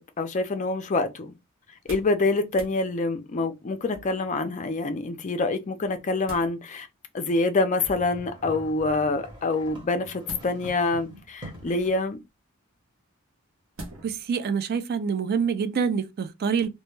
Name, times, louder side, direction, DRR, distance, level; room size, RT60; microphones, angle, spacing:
voice 1, 0.0-1.4 1.9-6.9 7.1-12.2, left 3 dB, 35° left, 0.4 m, -26 dB
sound 1, 1.7-2.2 2.5-2.8 3.9-4.3 5.8-6.5 7.7-8.2 10.2-10.9 11.6-12.1 13.7-14.2 14.7-14.8, right 1 dB, 60° right, 0.7 m, -43 dB
sound 2, 7.8-11.9, equal, 20° right, 0.8 m, -44 dB
voice 2, 14.0-16.7, right 6 dB, 45° right, 0.3 m, -26 dB
2.2 x 2.1 x 3.0 m
head